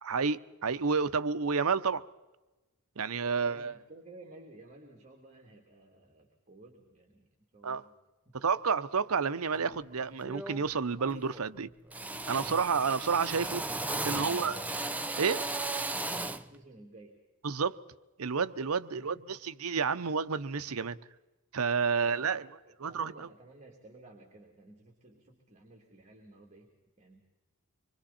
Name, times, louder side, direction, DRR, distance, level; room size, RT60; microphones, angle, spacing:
voice 1, 0.0-2.0 3.0-3.7 7.6-7.8 8.3-11.7 12.3-13.6 14.0-14.6 15.2-15.5 17.4-17.8 18.2-21.0 21.5-22.4 22.8-23.3, right 5 dB, 75° right, 0.7 m, -30 dB
voice 2, 3.2-7.9 8.2-8.3 13.9-14.6 16.3-17.2 19.0-19.4 21.9-27.2, right 2 dB, 30° right, 2.9 m, -54 dB
Drill, 9.6-9.8 10.2-10.7 11.0-11.6 11.9-16.5, right 2 dB, 5° right, 0.6 m, -36 dB
25.5 x 23.5 x 4.3 m
head